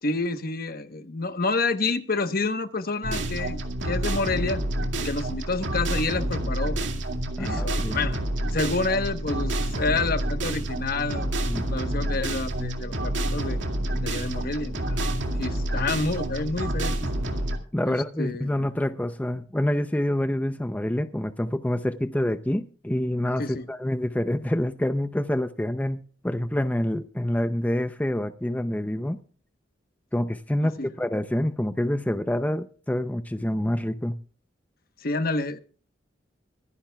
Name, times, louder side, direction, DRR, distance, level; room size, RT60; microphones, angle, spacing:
voice 1, 0.0-3.6 3.8-4.6 5.0-6.8 7.4-8.2 8.5-11.3 11.7-13.6 14.0-15.1 15.4-17.1 17.8-18.5 23.4-23.7 30.6-30.9 35.0-35.6, left 3 dB, 50° left, 1.1 m, -28 dB
sound 1, 3.0-17.6, right 1 dB, 80° right, 2.2 m, -28 dB
voice 2, 7.4-8.0 11.5-11.7 17.7-29.2 30.1-34.1, left 1 dB, 10° left, 0.5 m, -27 dB
25.0 x 10.5 x 2.3 m
head